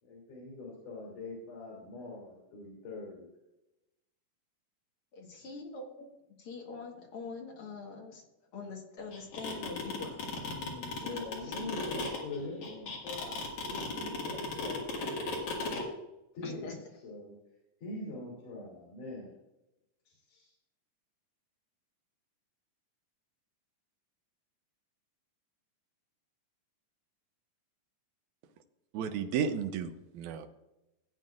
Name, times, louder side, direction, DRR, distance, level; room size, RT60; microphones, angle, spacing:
voice 1, 0.0-3.3 11.0-15.1 16.3-17.3 17.8-19.3 20.1-20.5, left 2 dB, 90° left, -4 dB, 4.5 m, -43 dB
voice 2, 5.1-6.1 6.4-8.2 8.5-11.5 16.4-16.8, left 4 dB, 50° left, 1 dB, 2.2 m, -44 dB
sound 1, 9.1-15.8, left 3 dB, 70° left, 3.4 m, -36 dB
voice 3, 28.9-30.5, right 7 dB, 75° right, 7 dB, 2.1 m, -33 dB
16.0 x 9.1 x 2.5 m, 0.94 s
omnidirectional pair, 3.6 m